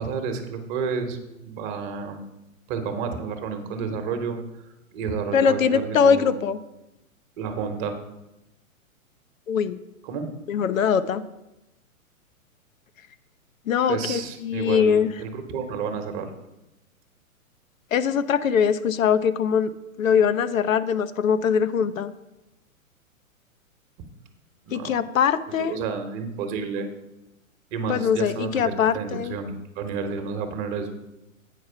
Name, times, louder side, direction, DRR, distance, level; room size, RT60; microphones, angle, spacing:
voice 1, 0.0-2.2 2.7-6.3 7.4-8.0 10.0-10.3 13.9-16.3 24.7-25.0 25.6-26.9 27.7-31.0, right 5 dB, 35° right, 6 dB, 1.1 m, -31 dB
voice 2, 5.3-6.6 9.5-9.8 10.5-11.2 13.7-15.1 17.9-19.7 20.0-22.1 24.7-25.8 27.9-29.4, left 7 dB, 70° left, 12 dB, 0.6 m, -22 dB
8.3 x 4.7 x 5.6 m, 0.93 s
hypercardioid pair, 120°, 42 cm